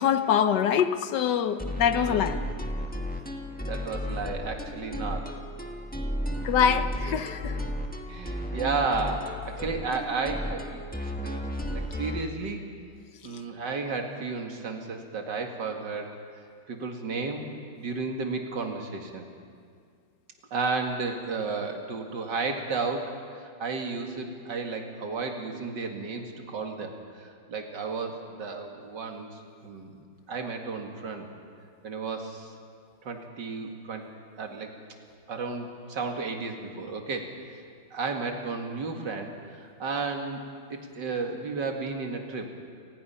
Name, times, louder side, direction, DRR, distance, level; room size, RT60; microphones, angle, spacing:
voice 1, 0.0-2.3 6.4-7.6, left 8 dB, 65° left, 11 dB, 1.3 m, -24 dB
sound 1, 1.6-12.3, equal, 5° left, 1.1 m, -33 dB
voice 2, 2.0-2.3 3.7-5.3 6.7-6.8 7.1-7.3 8.1-10.8 11.2-11.4 11.7-12.7 13.2-16.1 16.7-17.5 17.8-19.3 20.5-31.3 31.8-32.5 33.0-34.1 34.4-34.8 35.3-37.6 37.9-40.4 40.7-42.5, right 4 dB, 60° right, 3 dB, 2.6 m, -33 dB
30.0 x 19.5 x 5.7 m, 2.1 s
omnidirectional pair, 2.2 m